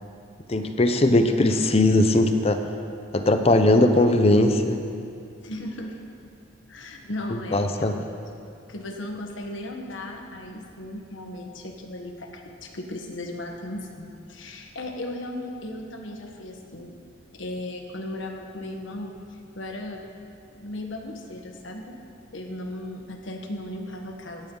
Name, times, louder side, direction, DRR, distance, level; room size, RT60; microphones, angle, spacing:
voice 1, 0.5-2.6 3.1-4.8 7.5-7.9, left 1 dB, 35° left, 7 dB, 0.7 m, -19 dB
voice 2, 5.4-6.0 6.7-8.0 8.7-16.9 17.3-20.1 20.5-22.0 22.3-24.5, left 1 dB, 90° left, 3 dB, 1.4 m, -36 dB
16.5 x 10.5 x 3.9 m, 2.5 s
head